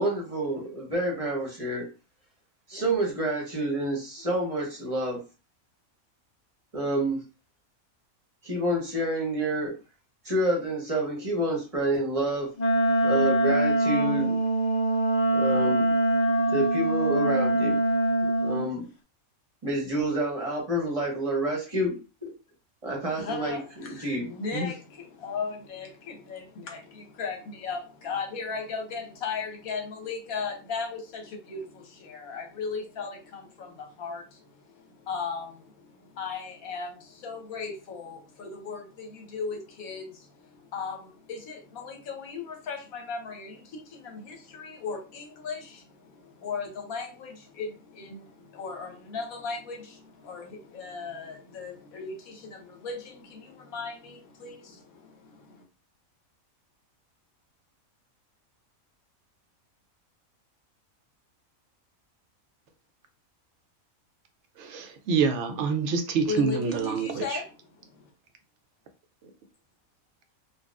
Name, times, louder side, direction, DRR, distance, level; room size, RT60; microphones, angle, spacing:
voice 1, 0.0-1.9 2.7-5.2 6.7-7.2 8.4-9.7 10.2-12.5 13.0-14.4 15.3-15.9 16.5-17.8 18.2-18.8 19.6-22.0 22.2-22.3 22.8-24.7, right 1 dB, 30° right, 0.9 m, -28 dB
Wind instrument woodwind instrument, 12.6-18.7, right 1 dB, 50° left, 0.5 m, -23 dB
voice 2, 23.2-55.6 66.3-67.5 67.9-68.1, left 4 dB, 80° left, 1.3 m, -37 dB
voice 3, 64.6-67.4, right 5 dB, 65° right, 0.8 m, -27 dB
3.8 x 2.3 x 2.4 m
omnidirectional pair, 1.5 m